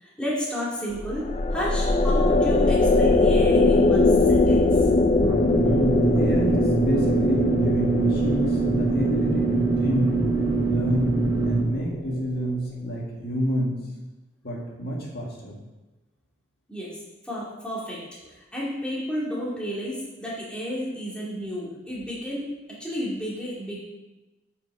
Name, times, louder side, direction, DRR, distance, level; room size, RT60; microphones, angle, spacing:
voice 1, 0.0-4.7 16.7-17.0 17.2-18.0 18.5-22.5 22.8-23.8, equal, 5° left, -7 dB, 2.2 m, -31 dB
sound 1, 0.9-12.4, left 2 dB, 35° left, 0.4 m, -22 dB
sound 2, 5.2-11.6, right 3 dB, 15° right, 1.1 m, -24 dB
voice 2, 5.6-10.1 10.7-11.2 11.4-13.7 14.4-15.6, equal, 55° left, -3 dB, 1.9 m, -28 dB
8.9 x 5.8 x 4.7 m, 1.1 s
head